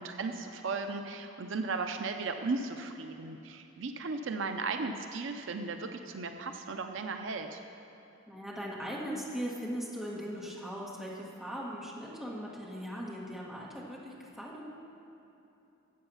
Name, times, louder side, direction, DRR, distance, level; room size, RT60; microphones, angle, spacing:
voice 1, 0.0-7.6, right 4 dB, 65° right, 6 dB, 0.5 m, -36 dB
voice 2, 8.3-14.6, equal, ahead, -5 dB, 1.7 m, -39 dB
13.0 x 7.9 x 5.6 m, 2.9 s
head